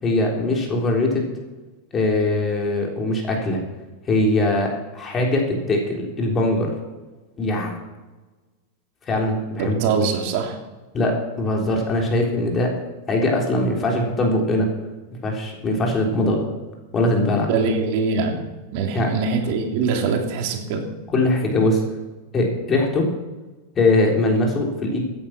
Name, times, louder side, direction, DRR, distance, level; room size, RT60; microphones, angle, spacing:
voice 1, 0.0-1.3 1.9-3.6 4.1-6.7 7.4-7.7 9.1-9.8 10.9-12.7 13.1-14.7 15.2-16.5 16.9-17.5 18.9-19.1 21.1-21.8 22.3-23.0 23.8-25.0, left 2 dB, 20° left, 0 dB, 3.8 m, -21 dB
voice 2, 9.6-10.6 17.5-18.4 18.7-20.8, right 5 dB, 55° right, 2 dB, 3.1 m, -23 dB
16.0 x 9.9 x 6.1 m, 1.2 s
supercardioid pair, 140°, 0 cm